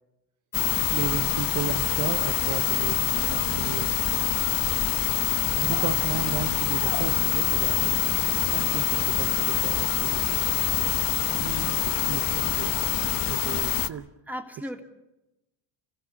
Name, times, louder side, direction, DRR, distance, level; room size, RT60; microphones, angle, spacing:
sound 1, 0.5-13.9, left 14 dB, 50° left, 1.1 m, -25 dB
voice 1, 0.9-4.0 5.5-7.9 8.5-10.4 11.3-12.7 13.3-14.1, right 9 dB, 45° right, 8 dB, 1.1 m, -34 dB
sound 2, 1.6-1.9 2.6-4.3 4.6-4.9 5.6-7.5 8.3-8.4, right 11 dB, 75° right, 1.6 m, -41 dB
voice 2, 13.9-14.8, equal, 5° right, 4 dB, 2.6 m, -37 dB
29.5 x 15.5 x 7.2 m, 0.97 s
supercardioid pair, 100°, 43 cm